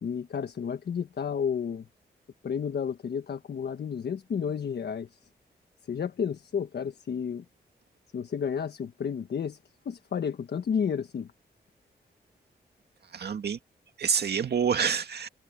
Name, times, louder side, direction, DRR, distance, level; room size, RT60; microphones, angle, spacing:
voice 1, 0.0-1.9 2.4-5.2 5.9-7.4 8.1-9.6 9.8-11.3, left 7 dB, 70° left, 1.3 m, -31 dB
voice 2, 13.1-13.6 14.0-15.3, right 7 dB, 65° right, 2.1 m, -27 dB
cardioid pair, 85°, 18 cm